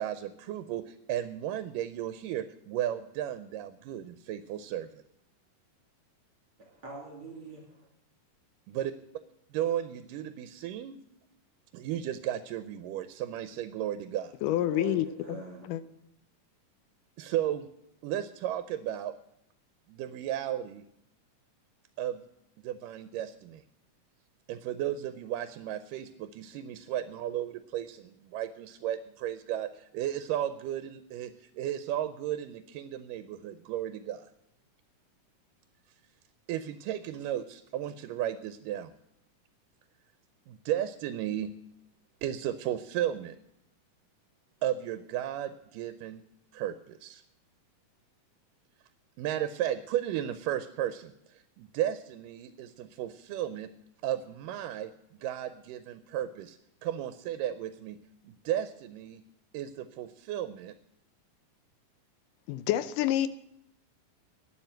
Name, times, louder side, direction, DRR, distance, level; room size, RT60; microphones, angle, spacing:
voice 1, 0.0-5.0 8.7-8.9 9.5-11.0 11.7-14.3 17.2-17.7 18.0-19.1 19.9-20.8 22.0-22.2 22.6-23.6 24.5-34.3 36.5-38.9 40.5-41.5 42.2-43.4 44.6-46.2 46.5-47.2 49.2-53.7 54.0-54.9 55.2-58.0 58.2-59.2 59.5-60.7, right 11 dB, 85° right, 11 dB, 2.3 m, -34 dB
voice 2, 6.6-7.9 14.7-15.7, right 2 dB, 45° right, -1 dB, 3.1 m, -43 dB
voice 3, 14.4-15.4 15.7-15.8 62.5-63.3, left 13 dB, 80° left, 15 dB, 2.2 m, -28 dB
12.0 x 9.9 x 7.8 m, 0.79 s
omnidirectional pair, 3.8 m